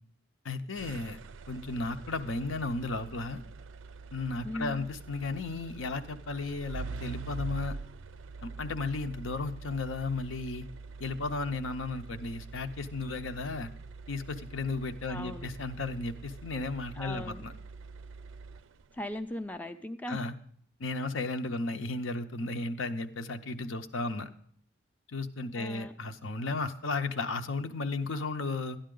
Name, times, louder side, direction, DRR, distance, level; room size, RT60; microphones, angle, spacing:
voice 1, 0.4-1.2 1.5-3.4 4.1-7.8 8.4-10.7 11.0-13.7 14.1-17.5 20.1-20.3 20.8-24.3 25.1-28.8, left 3 dB, 80° left, 8 dB, 0.7 m, -34 dB
sound 1, 0.7-19.0, right 4 dB, 80° right, 0.4 m, -45 dB
voice 2, 4.4-4.8 15.1-15.5 16.9-17.5 18.9-20.2 25.5-25.9, left 1 dB, 10° left, 7 dB, 0.3 m, -38 dB
12.5 x 10.0 x 3.8 m, 0.63 s
head